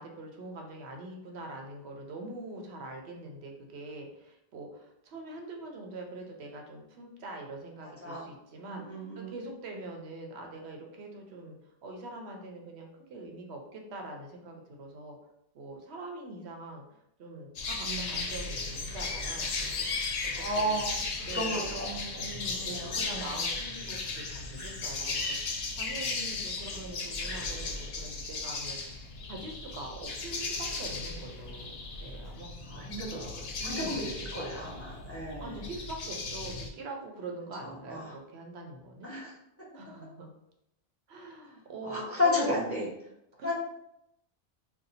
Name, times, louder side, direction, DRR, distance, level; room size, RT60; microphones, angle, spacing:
voice 1, 0.0-15.2 15.5-18.6 18.9-19.9 20.4-20.8 21.2-21.7 22.2-32.9 33.6-34.1 35.4-39.1 39.7-40.3 41.1-42.4 43.4-43.5, right 2 dB, 75° right, 2 dB, 0.9 m, -44 dB
voice 2, 8.6-9.3 17.8-18.1 20.3-20.9 21.3-22.3 22.6-23.3 32.7-33.3 33.6-34.0 34.3-35.5 37.9-38.0 39.0-39.3 41.8-42.9 43.4-43.5, left 1 dB, 15° left, -6 dB, 0.7 m, -32 dB
sound 1, 17.6-36.7, left 3 dB, 70° left, 0.8 m, -36 dB
2.7 x 2.3 x 3.9 m, 0.80 s
omnidirectional pair, 1.1 m